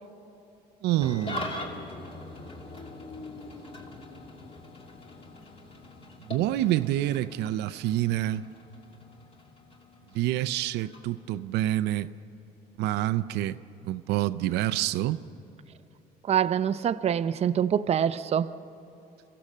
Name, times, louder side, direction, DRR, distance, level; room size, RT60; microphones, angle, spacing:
voice 1, 0.8-1.8 6.3-8.5 10.1-12.1 12.8-13.6 13.8-15.2, right 14 dB, 85° right, 0.5 m, -27 dB
Engine starting / Idling, 1.0-11.6, left 1 dB, 35° left, 2.6 m, -42 dB
voice 2, 16.3-18.5, right 9 dB, 40° right, 0.6 m, -25 dB
26.5 x 15.5 x 7.4 m
cardioid pair, 110°, 17 cm